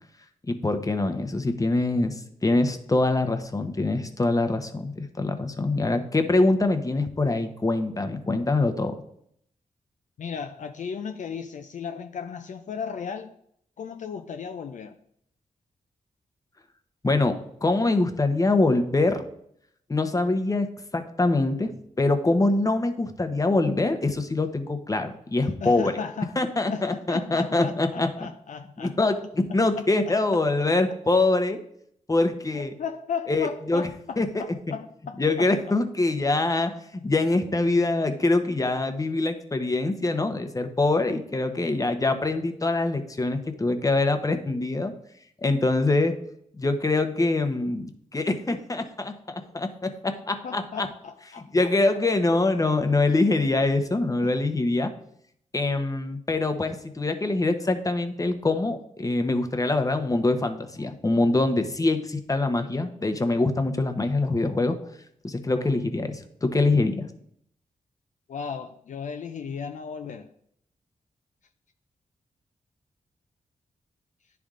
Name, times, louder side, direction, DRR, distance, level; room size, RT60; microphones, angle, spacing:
voice 1, 0.5-9.0 17.0-19.3 19.9-25.9 26.4-28.1 28.8-31.6 32.1-32.7 33.3-33.9 34.2-34.4 35.2-44.9 45.4-46.1 46.6-50.9 51.5-54.9 55.5-64.8 65.2-67.1, left 2 dB, 25° left, 8 dB, 0.9 m, -24 dB
voice 2, 10.2-13.3 13.8-15.0 25.6-26.3 26.7-28.9 29.5-29.9 30.3-30.4 32.5-35.5 50.4-51.7 54.2-54.4 68.3-70.3, left 6 dB, 65° left, 6 dB, 0.5 m, -35 dB
10.0 x 3.5 x 3.7 m, 0.70 s
cardioid pair, 55°, 14 cm